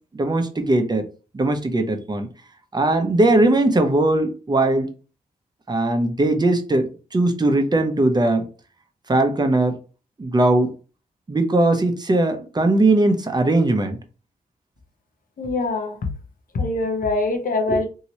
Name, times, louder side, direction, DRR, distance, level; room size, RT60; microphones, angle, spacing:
voice 1, 0.1-1.1 1.3-2.3 2.7-4.9 5.7-8.5 9.1-9.8 10.2-10.7 11.3-14.0 17.7-17.8, right 2 dB, 25° right, 0.7 m, -19 dB
voice 2, 15.4-16.0 16.5-17.9, left 2 dB, 65° left, 0.8 m, -23 dB
2.9 x 2.8 x 2.9 m
cardioid pair, 65°, 16 cm